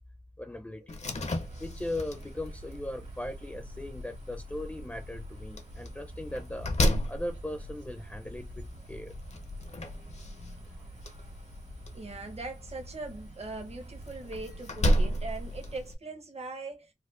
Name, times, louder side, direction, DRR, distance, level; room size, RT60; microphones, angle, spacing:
voice 1, 0.4-1.0 1.6-6.7 7.1-9.2, left 1 dB, 10° left, 0.5 m, -38 dB
Slam, 0.9-15.9, equal, 55° left, 0.7 m, -34 dB
sound 1, 1.3-15.8, right 3 dB, 75° right, 1.9 m, -49 dB
voice 2, 10.1-11.0 11.9-16.9, right 3 dB, 50° right, 0.9 m, -41 dB
4.3 x 2.2 x 2.4 m
wide cardioid pair, 90°, 14 cm